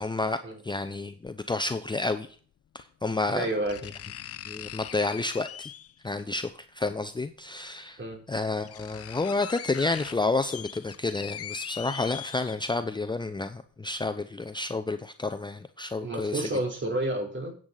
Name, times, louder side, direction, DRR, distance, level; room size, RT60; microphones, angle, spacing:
voice 1, 0.0-2.3 2.7-3.5 3.8-3.9 4.5-5.7 6.0-8.0 8.3-16.4, left 3 dB, 15° left, 9 dB, 0.7 m, -30 dB
sound 1, 1.2-1.3 2.8-2.9 3.7-6.0 7.4-7.5 8.1-8.2 8.4-12.9 13.3-13.4, left 10 dB, 50° left, 0.7 m, -41 dB
voice 2, 3.3-3.8 8.0-8.2 16.0-17.5, right 1 dB, 40° right, 2 dB, 3.8 m, -30 dB
13.5 x 9.1 x 4.0 m, 0.42 s
cardioid pair, 90°, 30 cm